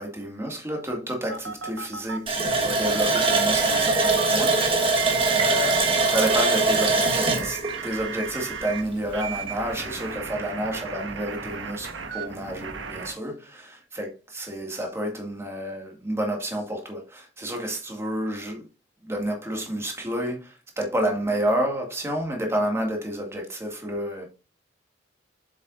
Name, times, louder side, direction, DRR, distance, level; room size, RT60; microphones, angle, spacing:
voice 1, 0.0-5.1 5.3-18.7 19.0-24.3, right 1 dB, 15° right, 2.1 m, -30 dB
sound 1, 1.3-2.2 2.9-4.3 5.0-8.8 9.1-13.1, right 7 dB, 80° right, 1.3 m, -34 dB
Water tap faucet, 2.3-8.8 9.1-9.2 9.6-9.8, right 3 dB, 30° right, 1.5 m, -22 dB
7.6 x 7.4 x 2.6 m
head